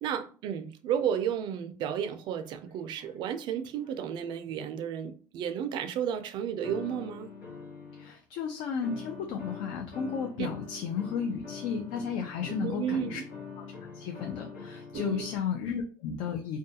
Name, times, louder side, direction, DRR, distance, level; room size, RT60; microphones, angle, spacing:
voice 1, 0.0-7.3 10.4-10.5 12.5-13.2 14.9-15.2, right 9 dB, 55° right, 0.4 m, -32 dB
sound 1, 1.2-1.3 2.3-3.4 3.8-4.8 6.6-8.2 8.8-15.4, left 5 dB, 85° left, 0.9 m, -44 dB
voice 2, 8.0-13.2 13.6-13.7 13.9-16.6, left 6 dB, 65° left, 0.4 m, -33 dB
2.3 x 2.2 x 2.7 m
supercardioid pair, 105°, 9 cm